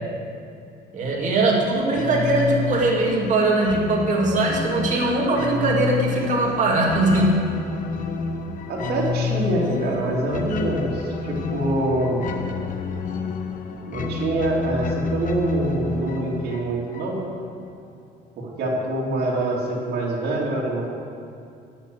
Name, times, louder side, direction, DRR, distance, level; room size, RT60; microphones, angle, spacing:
voice 1, 0.9-7.4, right 2 dB, 45° right, -2 dB, 2.5 m, -21 dB
sound 1, 1.9-17.4, left 5 dB, 50° left, 0.9 m, -29 dB
voice 2, 8.7-12.3 13.9-17.2 18.4-20.9, right 2 dB, 70° right, -3 dB, 2.7 m, -25 dB
10.0 x 6.7 x 7.9 m, 2.5 s
cardioid pair, 110°, 17 cm